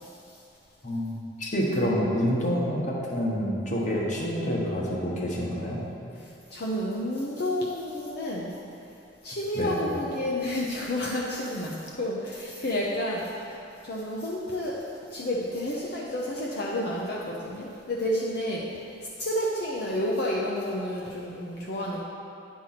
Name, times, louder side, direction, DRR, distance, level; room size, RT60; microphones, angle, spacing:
voice 1, 0.8-5.8 9.5-9.8, equal, 40° left, -3 dB, 1.4 m, -27 dB
voice 2, 6.2-8.5 9.2-13.6 13.8-18.7 19.2-22.0, left 1 dB, 60° left, -4 dB, 0.8 m, -30 dB
9.7 x 4.6 x 5.9 m, 2.7 s
head